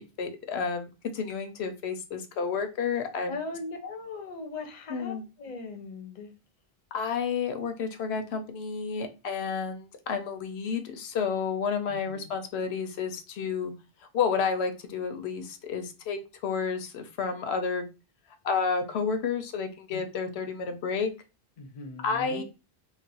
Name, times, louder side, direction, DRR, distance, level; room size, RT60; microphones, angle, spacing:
voice 1, 0.0-3.4 4.9-5.2 6.9-13.7 14.1-17.8 18.4-21.1 22.0-22.4, left 5 dB, 80° left, 0.8 m, -30 dB
voice 2, 3.3-6.3 11.9-12.3 19.9-20.0 21.6-22.4, left 3 dB, 50° left, 0.7 m, -39 dB
2.4 x 2.1 x 3.9 m
omnidirectional pair, 1.1 m